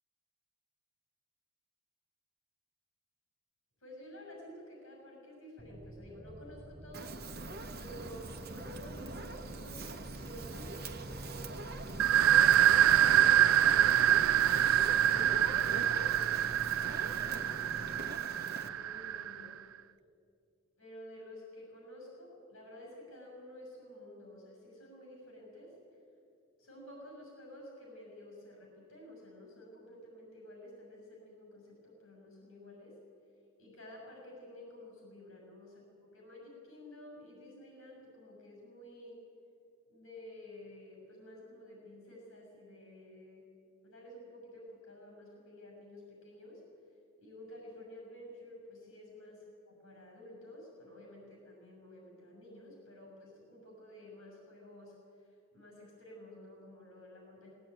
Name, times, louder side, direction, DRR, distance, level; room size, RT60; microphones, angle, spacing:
voice 1, 3.8-7.2 7.8-11.6 11.9-13.1 13.5-14.5 15.0-16.5 17.1-18.0 18.5-19.6 20.8-26.0 26.6-33.0 33.6-39.2 39.9-43.4 43.8-46.6 47.2-57.5, left 1 dB, 70° left, 0 dB, 6.8 m, -51 dB
sound 1, 5.6-18.2, right 1 dB, 20° right, 0.4 m, -47 dB
Fire, 6.9-18.7, right 2 dB, 50° right, 1.3 m, -44 dB
sound 2, 12.0-19.5, right 11 dB, 80° right, 0.4 m, -26 dB
19.5 x 18.0 x 9.2 m, 2.5 s
head